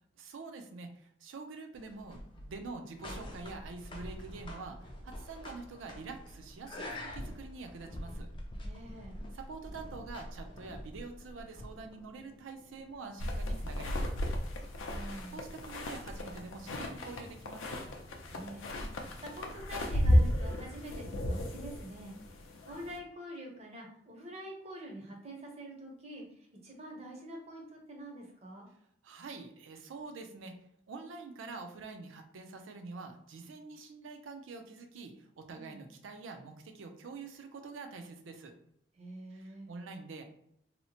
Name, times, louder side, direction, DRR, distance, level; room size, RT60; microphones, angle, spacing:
voice 1, 0.2-8.3 9.3-14.1 15.3-17.7 29.0-30.6 30.9-38.5 39.3-40.2, right 4 dB, 85° right, 5 dB, 0.4 m, -46 dB
sound 1, 1.7-16.6, left 1 dB, 25° left, 0.3 m, -47 dB
voice 2, 8.6-9.2 14.6-15.4 18.3-28.7 35.5-35.8 39.0-39.7, right 1 dB, 35° right, 0 dB, 0.5 m, -46 dB
sound 2, 13.2-23.0, equal, 85° left, 0.4 m, -33 dB
2.8 x 2.0 x 2.7 m, 0.72 s
head